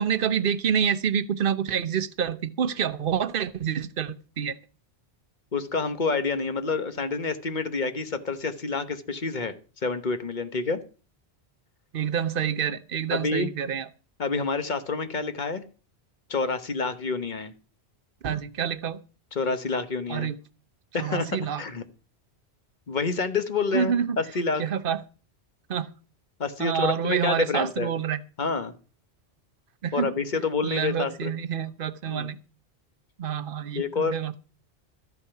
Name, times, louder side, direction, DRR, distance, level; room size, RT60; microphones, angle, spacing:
voice 1, 0.0-4.5 11.9-13.9 18.2-19.0 20.1-20.4 21.0-21.6 23.7-24.2 24.6-25.0 25.7-25.9 26.6-28.2 29.8-30.1 30.6-32.4 33.2-34.4, right 8 dB, 55° right, 1.0 m, -27 dB
voice 2, 5.5-9.5 9.8-10.8 13.1-13.5 14.2-15.6 16.3-17.5 19.3-20.3 20.9-21.8 22.9-24.6 26.4-27.9 28.4-28.7 29.9-31.3 32.1-32.3 33.7-34.2, left 4 dB, 45° left, 1.2 m, -28 dB
13.5 x 8.3 x 5.8 m
omnidirectional pair, 1.1 m